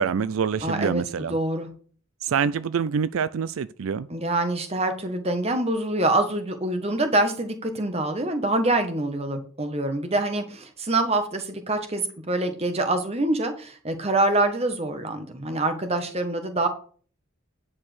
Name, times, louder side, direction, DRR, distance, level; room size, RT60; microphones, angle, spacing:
voice 1, 0.0-1.4 2.2-4.1, right 6 dB, 80° right, 0.4 m, -26 dB
voice 2, 0.6-1.7 4.1-16.7, right 2 dB, 30° right, 1.5 m, -25 dB
9.9 x 4.8 x 6.2 m
head